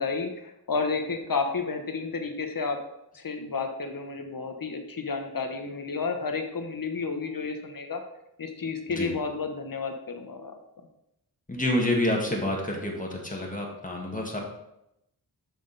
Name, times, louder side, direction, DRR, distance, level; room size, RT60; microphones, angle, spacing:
voice 1, 0.0-2.8 3.1-8.0 8.4-10.6, left 4 dB, 55° left, 5 dB, 1.0 m, -31 dB
voice 2, 11.5-14.4, left 1 dB, 20° left, -1 dB, 1.7 m, -28 dB
7.0 x 6.3 x 4.0 m, 0.83 s
wide cardioid pair, 75°, 40 cm